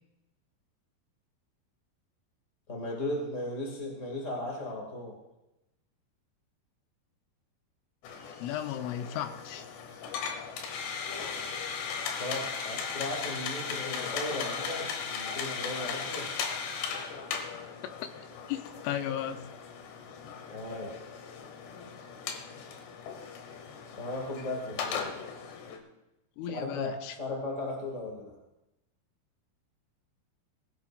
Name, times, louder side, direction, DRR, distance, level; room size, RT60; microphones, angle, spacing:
voice 1, 2.7-5.1 12.2-16.3 20.5-21.0 22.5-22.7 24.0-25.1 26.5-28.3, left 1 dB, 30° left, -2 dB, 1.3 m, -36 dB
sound 1, 8.0-25.8, left 6 dB, 70° left, 3.2 m, -37 dB
voice 2, 8.4-9.7 18.5-19.5 26.4-27.2, left 10 dB, 90° left, 8 dB, 3.4 m, -35 dB
20.5 x 13.0 x 2.6 m, 0.92 s
omnidirectional pair, 5.5 m